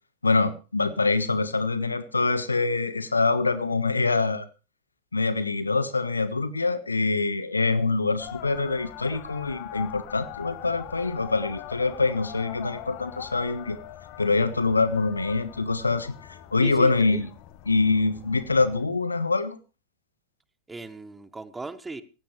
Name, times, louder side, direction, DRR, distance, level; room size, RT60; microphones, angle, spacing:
voice 1, 0.2-4.4 5.1-13.8 14.2-16.1 16.5-17.3 17.7-19.6, left 3 dB, 80° left, 14 dB, 1.3 m, -25 dB
sound 1, 8.2-18.9, left 14 dB, 40° left, 1.3 m, -42 dB
voice 2, 16.6-17.2 20.7-22.0, right 3 dB, 10° right, 15 dB, 1.2 m, -37 dB
17.5 x 16.0 x 3.3 m, 0.33 s
figure-of-eight pair, 90°, 0 cm